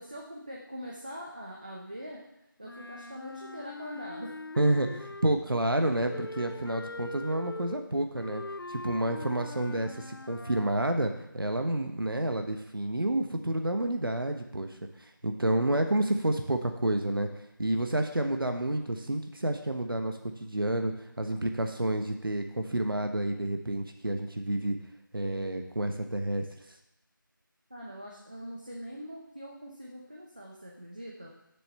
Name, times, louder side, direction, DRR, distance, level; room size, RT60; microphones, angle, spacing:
voice 1, 0.0-2.2 2.6-4.3 27.7-31.3, equal, 25° right, -3 dB, 0.7 m, -43 dB
Wind instrument woodwind instrument, 2.6-5.5 6.1-10.9, left 2 dB, 90° left, 0.5 m, -42 dB
voice 2, 4.6-8.4 8.7-14.7 15.0-17.3 17.6-24.8 25.1-26.5, right 1 dB, 85° right, 5 dB, 1.2 m, -29 dB
7.3 x 6.9 x 6.7 m, 0.87 s
figure-of-eight pair, 175°, 11 cm